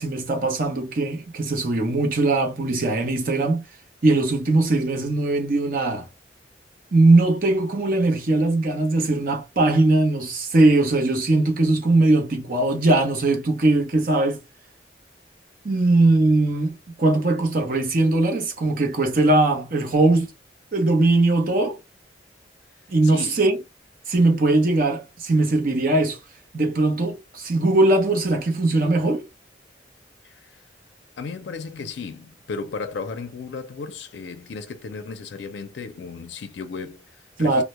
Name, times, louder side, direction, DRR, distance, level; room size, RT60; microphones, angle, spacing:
voice 1, 0.0-3.6 4.0-6.1 6.9-14.4 15.6-20.3 20.7-21.8 22.9-23.6 24.1-26.2 26.5-29.3 37.4-37.6, right 2 dB, 50° right, 0.7 m, -20 dB
voice 2, 23.0-23.4 30.2-30.6 31.2-37.6, left 4 dB, 75° left, 0.4 m, -35 dB
2.2 x 2.0 x 2.9 m
head